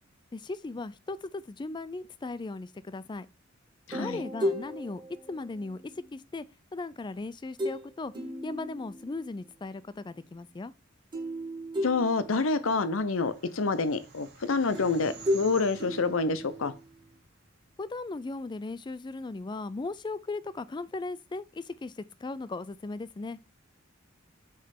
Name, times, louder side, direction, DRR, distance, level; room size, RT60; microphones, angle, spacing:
voice 1, 0.3-3.3 3.9-5.0 5.3-5.8 6.1-6.4 6.7-8.1 8.4-10.7 17.8-23.4, left 3 dB, 20° left, 0.4 m, -37 dB
voice 2, 3.9-4.2 11.8-16.7, left 4 dB, 80° left, 0.8 m, -27 dB
sound 1, 3.9-6.2 7.6-7.9 8.1-9.4 11.1-12.8 14.7-17.0, equal, 25° right, 1.4 m, -35 dB
sound 2, 12.5-17.9, right 4 dB, 55° right, 2.2 m, -51 dB
6.6 x 3.2 x 5.8 m
head